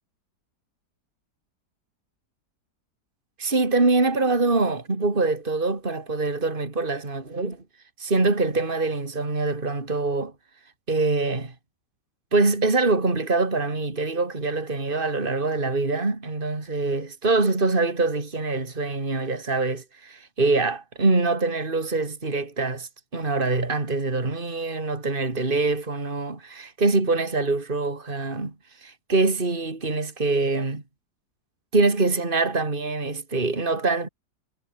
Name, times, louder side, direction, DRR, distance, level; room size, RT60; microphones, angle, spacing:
voice 1, 3.4-7.6 8.0-10.3 10.9-11.5 12.3-28.5 28.8-30.8 31.7-34.1, right 3 dB, 30° right, 3.4 m, -24 dB
omnidirectional pair, 1.8 m